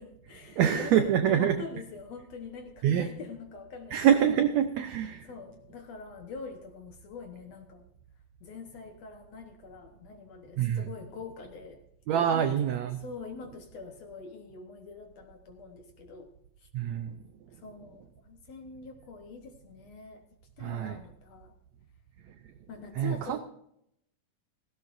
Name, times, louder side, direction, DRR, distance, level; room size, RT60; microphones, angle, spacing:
voice 1, 0.0-4.1 5.2-7.8 8.4-11.8 12.3-12.6 12.9-16.3 16.6-16.7 17.5-20.2 20.6-21.5 22.7-23.4, left 5 dB, 60° left, 5 dB, 1.9 m, -44 dB
voice 2, 0.6-1.6 2.8-3.1 3.9-5.2 10.6-10.8 12.1-13.0 16.7-17.1 20.6-21.0 23.0-23.4, right 9 dB, 80° right, 8 dB, 1.5 m, -25 dB
16.5 x 16.0 x 2.6 m, 0.75 s
omnidirectional pair, 4.0 m